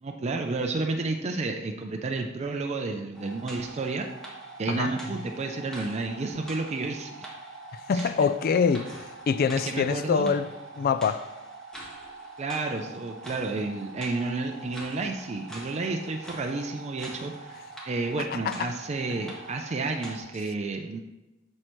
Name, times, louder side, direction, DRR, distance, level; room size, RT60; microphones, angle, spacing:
voice 1, 0.0-4.1 4.6-7.3 7.9-8.1 9.6-10.3 12.4-21.0, right 3 dB, 35° right, 0.4 m, -31 dB
sound 1, 3.1-20.2, right 2 dB, 5° left, 1.5 m, -43 dB
voice 2, 7.9-8.9 9.3-10.5 10.8-11.3 18.5-18.7, left 6 dB, 50° left, 0.3 m, -24 dB
7.5 x 6.5 x 3.1 m
head